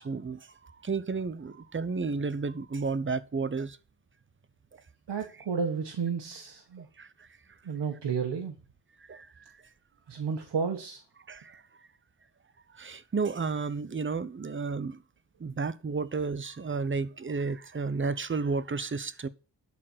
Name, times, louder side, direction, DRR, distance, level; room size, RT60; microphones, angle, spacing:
voice 1, 0.0-3.8 6.8-7.3 9.1-9.3 11.3-11.6 12.7-15.0 15.4-19.3, right 4 dB, 30° right, 0.8 m, -32 dB
voice 2, 5.1-6.9 7.6-8.6 10.1-11.0, right 6 dB, 80° right, 1.5 m, -32 dB
12.0 x 4.4 x 7.9 m
cardioid pair, 70°, 42 cm